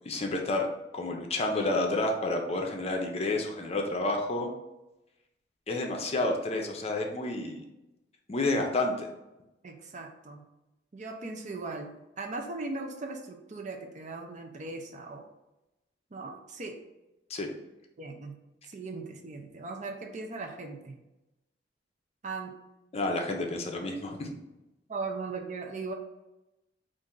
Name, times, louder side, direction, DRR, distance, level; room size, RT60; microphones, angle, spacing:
voice 1, 0.1-0.7 0.9-4.5 5.7-7.6 8.3-9.1 17.3-17.5 22.9-24.3, left 2 dB, 35° left, 3 dB, 0.6 m, -30 dB
voice 2, 9.6-10.4 10.9-15.3 16.1-16.8 18.0-18.4 18.7-21.0 22.2-22.5 24.9-25.9, right 3 dB, 40° right, 3 dB, 0.5 m, -38 dB
4.2 x 2.6 x 3.7 m, 0.96 s
head